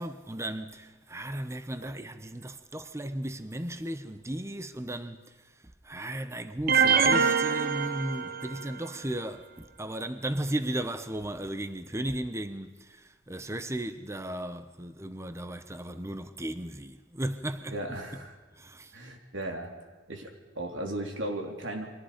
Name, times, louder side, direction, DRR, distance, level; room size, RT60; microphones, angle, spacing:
voice 1, 0.0-18.0 18.6-19.0, right 1 dB, 15° right, 0.8 m, -35 dB
sound 1, 6.7-8.8, right 6 dB, 55° right, 1.2 m, -24 dB
voice 2, 17.7-18.3 18.9-19.7 20.1-21.9, right 1 dB, 90° right, 3.6 m, -36 dB
29.5 x 23.5 x 5.2 m
head